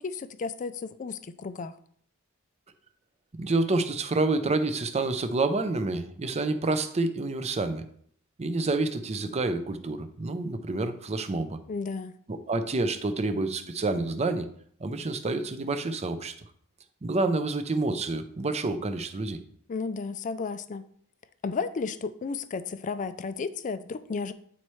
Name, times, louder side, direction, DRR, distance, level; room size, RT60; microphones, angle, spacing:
voice 1, 0.0-1.8 11.7-12.2 19.7-20.8 21.4-24.3, left 4 dB, 35° left, 12 dB, 0.4 m, -33 dB
voice 2, 3.3-7.8 8.4-11.6 12.3-14.5 14.8-16.3 17.0-19.4, right 3 dB, 30° right, 9 dB, 0.6 m, -28 dB
9.4 x 4.3 x 3.1 m, 0.62 s
head